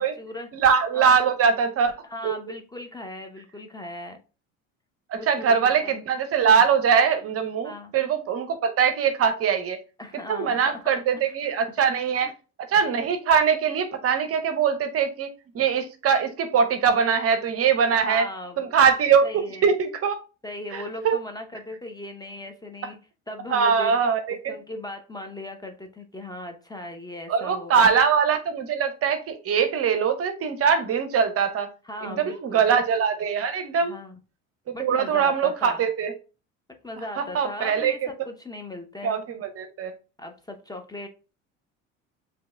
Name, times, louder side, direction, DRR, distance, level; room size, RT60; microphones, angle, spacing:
voice 1, 0.0-0.5 0.9-1.2 2.0-4.2 5.1-6.0 7.6-7.9 10.0-10.8 11.2-11.5 12.2-12.3 17.9-18.6 19.2-19.7 20.4-23.0 23.3-27.9 31.8-32.7 33.8-34.1 34.7-35.8 36.8-39.3 40.2-41.1, left 1 dB, 10° left, 4 dB, 0.7 m, -38 dB
voice 2, 0.5-2.0 2.2-2.3 5.1-9.8 10.3-12.3 12.7-15.3 15.5-18.2 18.6-20.2 20.7-21.2 23.5-24.5 27.3-31.7 32.0-34.0 34.7-36.1 37.2-38.1 39.0-39.9, right 6 dB, 35° right, 9 dB, 0.7 m, -22 dB
7.4 x 2.8 x 2.2 m, 0.34 s
hypercardioid pair, 70°, 39 cm